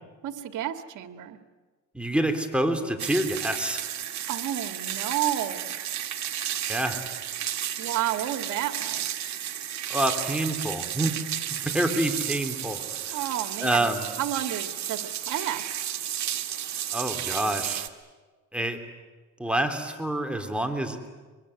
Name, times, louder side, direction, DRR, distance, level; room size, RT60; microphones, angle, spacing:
voice 1, 0.2-1.4 4.3-5.8 7.8-9.0 13.1-13.9 14.2-15.6, right 12 dB, 85° right, 8 dB, 1.8 m, -31 dB
voice 2, 1.9-3.8 6.7-7.0 9.9-11.1 11.6-13.2 13.6-14.0 16.9-17.9 18.5-18.8 19.4-21.1, right 1 dB, 5° right, 5 dB, 3.3 m, -27 dB
sound 1, 3.0-17.9, right 11 dB, 65° right, 1.9 m, -33 dB
24.5 x 23.0 x 9.9 m, 1.3 s
cardioid pair, 90°, 30 cm